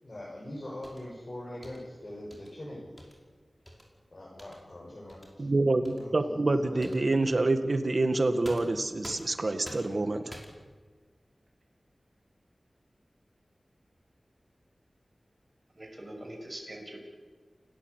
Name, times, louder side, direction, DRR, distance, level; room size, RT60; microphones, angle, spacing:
voice 1, 0.0-2.9 4.1-5.5 5.9-6.9, left 1 dB, 50° left, -5 dB, 6.6 m, -42 dB
sound 1, 0.8-1.1 1.6-1.8 2.3-2.5 3.0-3.2 3.7-3.9 4.4-4.6 5.1-5.3 5.8-6.0 6.8-7.1 8.4-9.4 9.6-10.0 10.3-10.7, equal, 5° left, 5.1 m, -47 dB
voice 2, 5.4-10.2, right 2 dB, 60° right, 9 dB, 1.9 m, -27 dB
voice 3, 15.8-17.0, right 1 dB, 30° right, 1 dB, 6.5 m, -43 dB
29.0 x 13.5 x 8.3 m, 1.4 s
wide cardioid pair, 60°, 0 cm